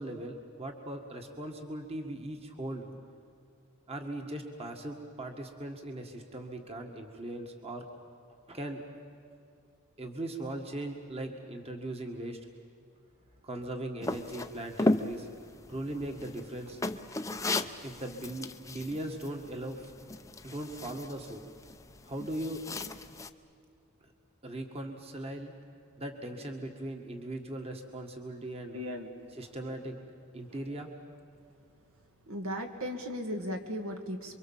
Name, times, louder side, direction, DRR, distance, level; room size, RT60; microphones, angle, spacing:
voice 1, 0.0-2.9 3.9-7.9 8.5-8.8 10.0-12.4 13.4-15.3 15.7-16.8 17.8-19.9 20.4-21.4 22.1-22.6 24.0-24.1 24.4-25.5 26.0-28.8 29.3-30.0 30.3-30.9, right 1 dB, 25° right, 3 dB, 1.9 m, -39 dB
sound 1, 14.0-23.3, left 2 dB, 15° left, 0.7 m, -36 dB
voice 2, 28.7-29.1 32.3-34.4, equal, 70° right, 4 dB, 2.4 m, -36 dB
28.5 x 23.5 x 7.4 m, 2.4 s
head